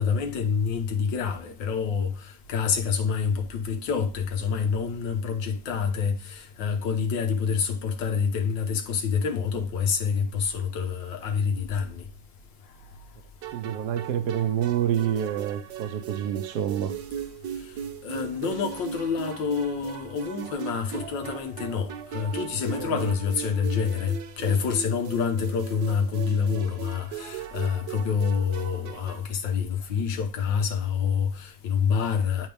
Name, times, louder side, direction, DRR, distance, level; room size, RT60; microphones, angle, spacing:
voice 1, 0.0-12.0 18.0-32.5, left 6 dB, 90° left, 1.8 m, -27 dB
sound 1, 13.4-29.3, right 8 dB, 85° right, 1.5 m, -38 dB
voice 2, 13.5-16.9 22.8-23.0, right 10 dB, 70° right, 1.3 m, -27 dB
10.5 x 3.7 x 3.3 m
omnidirectional pair, 1.9 m